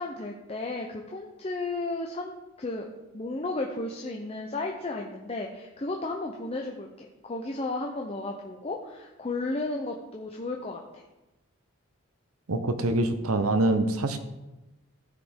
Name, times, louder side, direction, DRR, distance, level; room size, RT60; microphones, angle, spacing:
voice 1, 0.0-2.9 3.1-11.0, left 2 dB, 25° left, 1 dB, 0.5 m, -34 dB
voice 2, 12.5-14.2, right 2 dB, 80° right, 9 dB, 0.8 m, -25 dB
14.0 x 5.0 x 3.6 m, 1.0 s
head